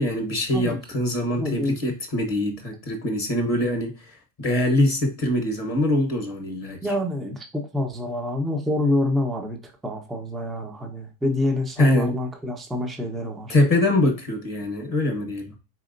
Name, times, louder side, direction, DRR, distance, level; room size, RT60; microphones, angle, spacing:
voice 1, 0.0-3.9 4.4-6.8 11.8-12.1 13.5-15.6, left 1 dB, 25° left, 4 dB, 1.0 m, -23 dB
voice 2, 1.4-1.8 6.8-13.5, left 1 dB, ahead, 2 dB, 0.5 m, -27 dB
4.8 x 4.2 x 2.5 m, 0.31 s
omnidirectional pair, 1.6 m